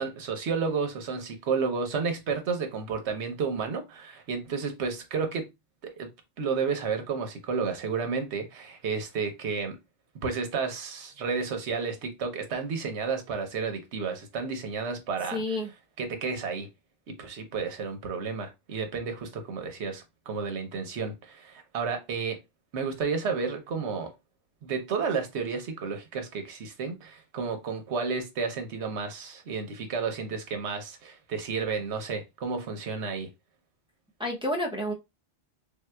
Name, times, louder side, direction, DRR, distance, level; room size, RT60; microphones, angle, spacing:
voice 1, 0.0-5.5 5.8-6.1 6.4-9.8 10.2-15.6 16.0-16.7 17.1-22.4 22.7-24.1 24.6-33.3, right 5 dB, 75° right, 1.1 m, -31 dB
voice 2, 15.3-15.7 34.2-34.9, left 1 dB, 5° right, 0.4 m, -29 dB
3.4 x 2.8 x 2.2 m
omnidirectional pair, 1.2 m